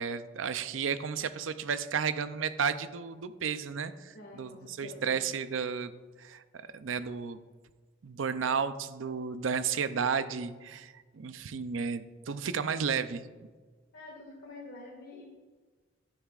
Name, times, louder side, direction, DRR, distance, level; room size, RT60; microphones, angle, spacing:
voice 1, 0.0-5.9 6.2-7.4 8.0-13.3, right 6 dB, 85° right, 12 dB, 0.5 m, -33 dB
voice 2, 4.1-5.2 13.9-15.2, left 2 dB, 70° left, -4 dB, 1.9 m, -47 dB
11.5 x 9.5 x 2.4 m, 1.4 s
head